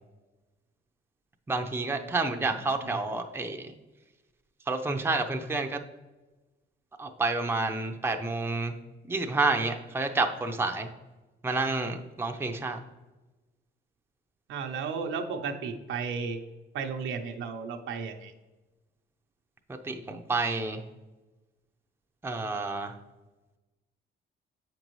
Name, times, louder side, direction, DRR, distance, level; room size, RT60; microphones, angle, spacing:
voice 1, 1.5-3.7 4.7-5.8 7.0-8.7 9.1-10.9 11.4-12.8 19.8-20.8 22.2-23.0, right 3 dB, 10° right, 4 dB, 0.6 m, -29 dB
voice 2, 14.5-16.4 16.7-18.3, right 5 dB, 80° right, 5 dB, 0.8 m, -33 dB
7.2 x 5.3 x 3.1 m, 1.1 s
cardioid pair, 90°, 20 cm